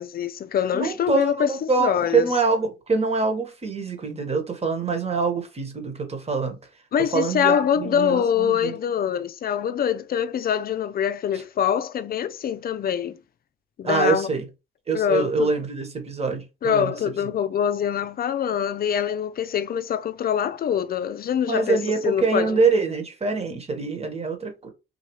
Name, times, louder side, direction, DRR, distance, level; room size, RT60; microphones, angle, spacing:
voice 1, 0.0-2.3 6.9-13.2 13.8-14.3 14.9-15.5 16.6-21.8 22.0-22.6, left 8 dB, 50° left, 0.5 m, -24 dB
voice 2, 0.7-6.6 7.1-8.8 13.8-14.5 14.9-17.3 21.4-24.7, right 4 dB, 30° right, 1.4 m, -25 dB
4.1 x 2.7 x 3.1 m
cardioid pair, 90°, 20 cm